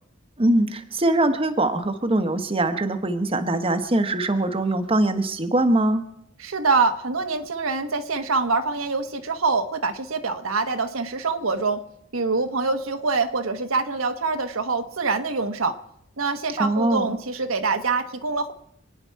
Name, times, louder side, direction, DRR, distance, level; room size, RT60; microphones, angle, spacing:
voice 1, 0.4-6.0 16.6-17.2, right 1 dB, 25° right, 7 dB, 1.0 m, -22 dB
voice 2, 6.4-11.8 12.1-15.8 16.2-18.5, right 4 dB, 80° right, 6 dB, 1.2 m, -25 dB
27.0 x 9.7 x 4.6 m, 0.73 s
head